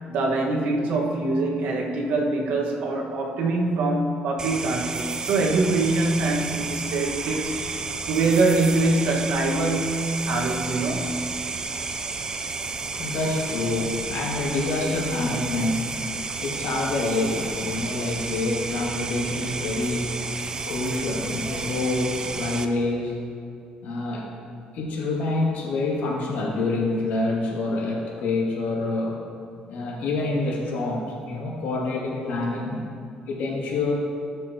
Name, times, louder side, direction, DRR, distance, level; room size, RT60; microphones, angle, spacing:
voice 1, 0.0-7.5 8.1-11.1, right 2 dB, 90° right, -1 dB, 1.5 m, -24 dB
sound 1, 4.4-22.6, right 4 dB, 25° right, 0.5 m, -32 dB
voice 2, 13.0-15.9 16.4-20.3 20.7-23.2 23.8-24.3 24.7-29.2 29.7-32.8 33.3-33.9, left 2 dB, 85° left, -3 dB, 2.3 m, -27 dB
18.0 x 6.4 x 2.9 m, 2.4 s
cardioid pair, 135°, 3 cm